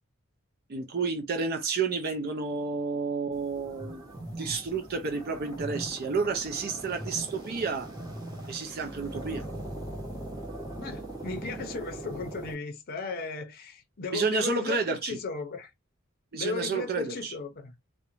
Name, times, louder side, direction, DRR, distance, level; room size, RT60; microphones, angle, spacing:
voice 1, 0.7-4.1 4.4-7.9 8.5-9.4 14.1-15.2 16.3-17.3, right 4 dB, 50° right, 0.4 m, -30 dB
sound 1, 3.3-12.5, right 1 dB, 20° right, 1.1 m, -40 dB
voice 2, 10.8-15.7 16.3-17.7, left 4 dB, 50° left, 0.6 m, -36 dB
2.5 x 2.1 x 2.9 m
head